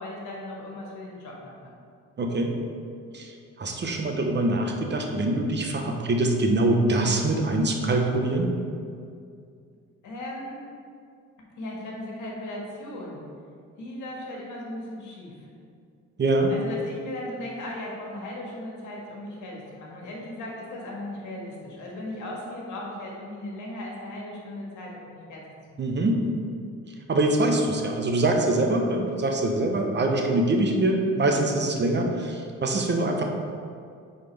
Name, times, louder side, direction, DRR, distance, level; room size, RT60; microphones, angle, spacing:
voice 1, 0.0-1.7 10.0-10.6 11.6-13.2 13.8-15.3 16.5-25.4 25.7-25.9, left 1 dB, 75° left, -2 dB, 1.6 m, -37 dB
voice 2, 2.2-2.5 3.1-3.3 3.6-8.5 16.2-16.5 25.8-26.2 27.1-33.2, right 2 dB, 35° right, 2 dB, 0.9 m, -24 dB
9.1 x 4.1 x 3.4 m, 2.4 s
cardioid pair, 90°, 30 cm